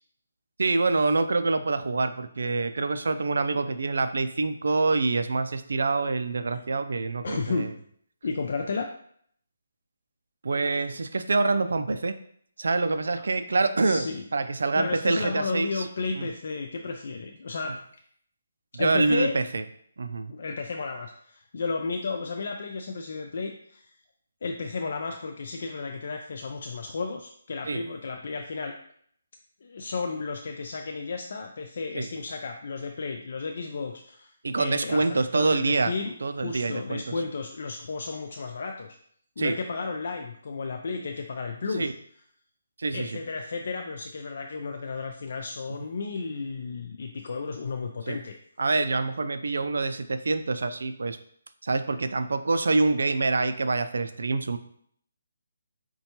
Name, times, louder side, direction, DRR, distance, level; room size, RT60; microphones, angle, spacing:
voice 1, 0.6-7.7 10.4-12.1 12.6-15.9 16.1-16.3 18.7-19.6 20.0-20.3 27.6-27.8 31.9-32.1 34.4-35.9 36.2-37.1 39.4-39.5 41.8-41.9 42.8-43.2 48.1-48.2 48.6-51.2 51.6-54.6, right 3 dB, 75° right, 10 dB, 0.3 m, -26 dB
voice 2, 7.2-7.7 8.2-8.9 13.8-14.2 14.7-17.8 18.7-19.4 20.3-23.9 24.4-28.8 29.6-39.0 39.4-41.9 42.9-48.4, left 4 dB, 60° left, 4 dB, 0.3 m, -33 dB
5.1 x 2.2 x 2.8 m, 0.64 s
hypercardioid pair, 160°, 0 cm